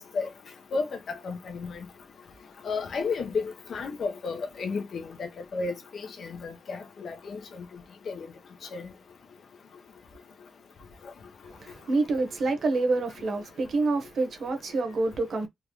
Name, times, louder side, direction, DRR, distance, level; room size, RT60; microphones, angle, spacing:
voice 1, 0.7-1.9 2.6-7.4 8.1-8.3 8.7-8.9, left 4 dB, 60° left, 1.0 m, -33 dB
voice 2, 11.6-15.5, right 3 dB, 65° right, 1.1 m, -27 dB
3.9 x 2.4 x 3.1 m
wide cardioid pair, 165°, 0 cm